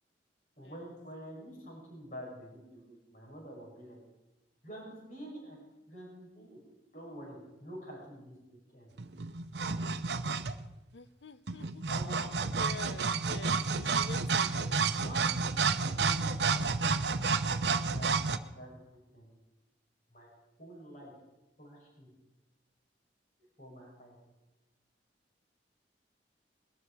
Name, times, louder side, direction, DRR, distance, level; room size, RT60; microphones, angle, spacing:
voice 1, 0.6-4.0 4.6-6.6 6.9-8.9 11.8-12.3 14.8-15.5 15.8-16.9 17.8-18.8 19.1-19.3 20.1-20.3 20.6-21.1 21.6-22.1 23.6-24.2, equal, 50° left, -3 dB, 6.2 m, -48 dB
sound 1, 9.0-10.7 11.5-18.4, right 4 dB, 70° right, 0.8 m, -30 dB
voice 2, 10.9-11.8 12.5-14.8, left 5 dB, 80° left, 13 dB, 0.8 m, -47 dB
21.5 x 12.5 x 4.9 m, 1.0 s
head